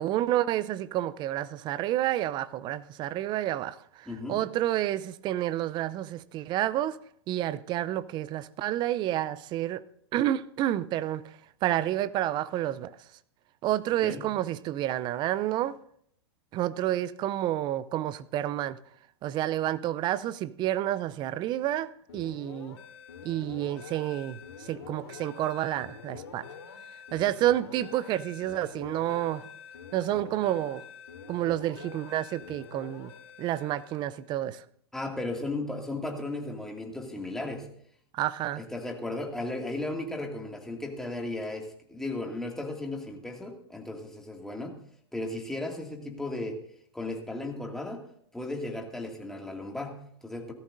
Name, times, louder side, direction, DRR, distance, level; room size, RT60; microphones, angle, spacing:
voice 1, 0.0-7.0 7.3-9.8 10.1-12.9 13.6-15.8 16.5-18.8 19.2-22.8 23.2-26.5 27.1-29.4 29.9-30.8 31.3-33.1 33.4-34.6 38.1-38.6, right 13 dB, 35° right, 0.5 m, -29 dB
voice 2, 4.1-4.4 14.0-14.2 34.9-37.7 38.6-44.7 45.1-46.6 46.9-48.0 48.3-50.5, left 2 dB, 5° left, 2.2 m, -35 dB
sound 1, 22.1-34.2, left 6 dB, 85° left, 2.7 m, -46 dB
17.5 x 14.0 x 2.6 m
hypercardioid pair, 120°, 14 cm